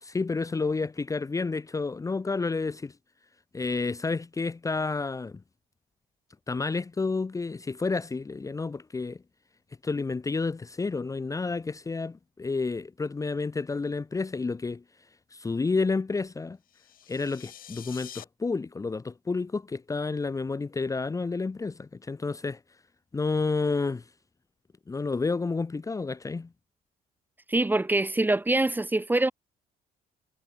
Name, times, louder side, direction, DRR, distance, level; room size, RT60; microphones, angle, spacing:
voice 1, 0.0-2.9 3.5-5.4 6.5-9.2 9.8-14.8 15.3-16.6 17.1-22.6 23.1-24.0 24.9-26.5, left 4 dB, 20° left, 1.1 m, -30 dB
sound 1, 16.7-18.2, left 11 dB, 55° left, 3.0 m, -46 dB
voice 2, 27.5-29.3, right 2 dB, 10° right, 1.4 m, -24 dB
cardioid pair, 110°, 17 cm